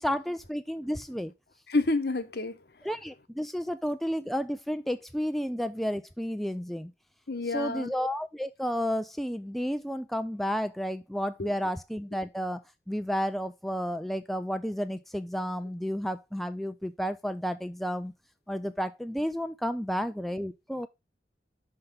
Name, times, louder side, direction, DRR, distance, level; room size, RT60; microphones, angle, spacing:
voice 1, 0.0-1.3 2.8-6.9 7.5-12.6 12.9-18.1 18.5-20.9, equal, ahead, 0.4 m, -32 dB
voice 2, 1.7-2.6 7.3-7.9 11.4-11.5, left 2 dB, 60° left, 0.9 m, -28 dB
5.9 x 5.5 x 5.0 m
head